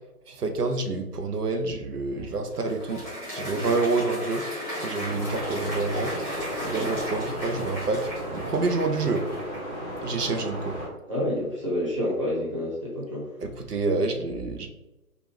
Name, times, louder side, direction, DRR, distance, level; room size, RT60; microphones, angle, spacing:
voice 1, 0.3-3.1 3.3-4.5 4.7-6.2 6.6-9.3 10.0-10.9 13.4-14.7, right 3 dB, 90° right, 5 dB, 0.6 m, -28 dB
Applause, 2.1-9.8, equal, 5° right, 1.3 m, -36 dB
sound 1, 5.0-10.9, equal, 15° left, 0.8 m, -35 dB
voice 2, 11.1-13.3, left 1 dB, 20° right, -6 dB, 0.5 m, -29 dB
3.0 x 2.5 x 3.2 m, 1.0 s
figure-of-eight pair, 140°, 45 cm